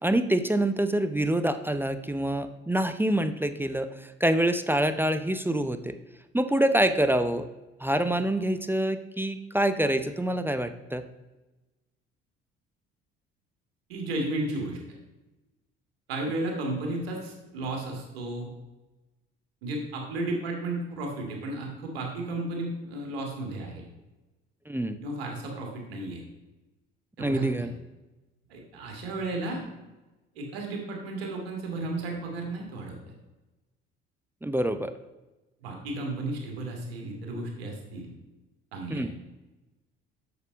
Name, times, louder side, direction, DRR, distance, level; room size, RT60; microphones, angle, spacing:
voice 1, 0.0-6.0 6.3-7.5 7.8-11.1 24.7-25.0 27.2-27.7 34.4-34.9 38.9-39.1, right 1 dB, 5° right, 10 dB, 0.6 m, -26 dB
voice 2, 13.9-14.8 16.1-18.5 19.6-23.8 25.0-26.2 27.2-27.7 28.5-29.6 30.4-33.1 35.6-38.1 38.7-39.0, right 2 dB, 85° right, 1 dB, 2.0 m, -33 dB
6.9 x 6.4 x 5.2 m, 1.1 s
hypercardioid pair, 60°, 30 cm